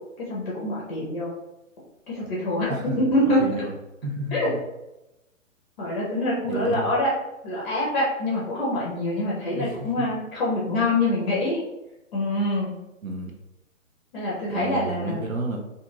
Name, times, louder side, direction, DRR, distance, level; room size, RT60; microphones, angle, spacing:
voice 1, 0.2-1.3 2.1-3.4 4.3-4.5 5.8-7.1 7.4-11.6 12.1-12.7 14.1-15.2, left 1 dB, 35° left, -5 dB, 0.7 m, -25 dB
voice 2, 3.4-3.7 4.0-4.6 6.5-6.9 9.5-10.1 13.0-13.3 14.5-15.6, right 1 dB, 80° right, 0 dB, 0.6 m, -31 dB
2.5 x 2.4 x 3.0 m, 0.95 s
figure-of-eight pair, 125°, 41 cm